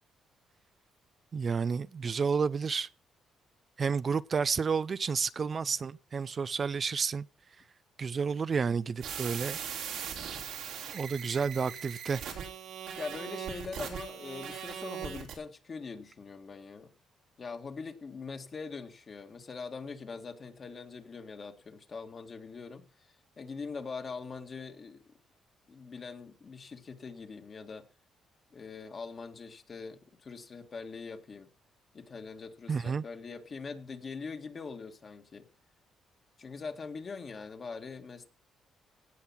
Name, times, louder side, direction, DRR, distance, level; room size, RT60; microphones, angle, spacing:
voice 1, 1.3-2.9 3.8-7.2 8.0-9.6 10.9-12.2 32.7-33.0, right 5 dB, 40° right, 0.4 m, -30 dB
sound 1, 9.0-15.3, right 8 dB, 85° right, 3.2 m, -40 dB
voice 2, 13.0-16.9 17.4-25.0 25.7-27.9 28.5-31.5 31.9-35.5 36.4-38.3, left 4 dB, 40° left, 1.9 m, -42 dB
17.0 x 5.7 x 5.8 m
cardioid pair, 90°, 0 cm